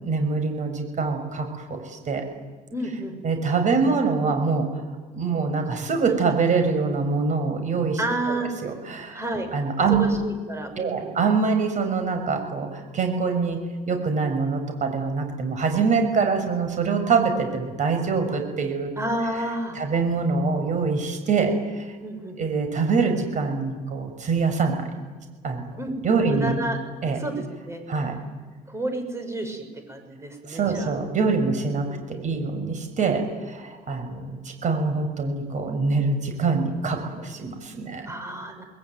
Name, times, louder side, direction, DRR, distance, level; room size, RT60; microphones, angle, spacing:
voice 1, 0.0-2.2 3.2-4.7 5.1-8.0 8.3-9.2 9.5-10.1 10.8-13.6 13.9-18.9 19.8-21.9 22.4-24.8 25.4-25.8 26.0-26.6 27.0-27.2 27.9-28.1 30.5-31.9 32.2-34.4 34.6-38.0, right 4 dB, 45° right, 6 dB, 6.4 m, -24 dB
voice 2, 2.7-3.2 8.0-8.5 9.1-9.5 9.9-11.2 19.0-19.8 22.0-22.4 25.8-26.0 26.2-26.8 27.1-27.8 28.7-30.9 31.9-32.3 38.1-38.6, right 1 dB, 15° right, 6 dB, 6.2 m, -30 dB
28.0 x 20.5 x 9.6 m, 1.4 s
cardioid pair, 110°, 17 cm